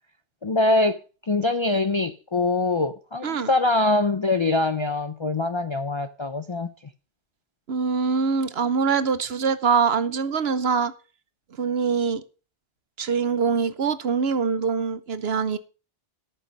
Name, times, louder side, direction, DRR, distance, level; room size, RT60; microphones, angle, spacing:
voice 1, 0.4-6.7, left 2 dB, 35° left, 0.5 m, -23 dB
voice 2, 7.7-10.9 11.6-12.2 13.0-15.6, right 5 dB, 60° right, 1.0 m, -23 dB
13.5 x 6.8 x 5.2 m
omnidirectional pair, 1.2 m